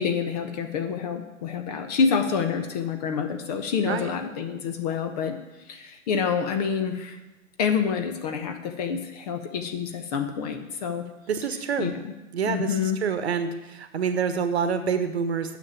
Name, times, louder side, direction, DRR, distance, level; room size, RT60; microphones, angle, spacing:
voice 1, 0.0-5.4 5.7-7.2 7.6-11.0 11.8-12.1 12.5-13.0, left 6 dB, 30° left, 7 dB, 1.0 m, -27 dB
voice 2, 11.3-11.9 12.3-12.7 13.0-15.6, right 6 dB, 50° right, 9 dB, 1.3 m, -27 dB
9.6 x 7.0 x 8.5 m, 1.1 s
figure-of-eight pair, 125°, 41 cm